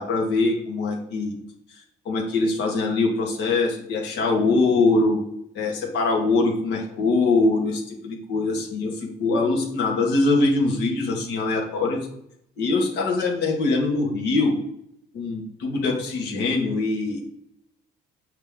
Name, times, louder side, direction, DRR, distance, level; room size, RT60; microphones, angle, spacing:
voice 1, 0.0-1.4 2.0-5.2 5.5-12.0 12.6-14.6 15.1-17.2, left 3 dB, 80° left, 0 dB, 2.3 m, -23 dB
8.2 x 5.8 x 3.8 m, 0.74 s
cardioid pair, 145°, 17 cm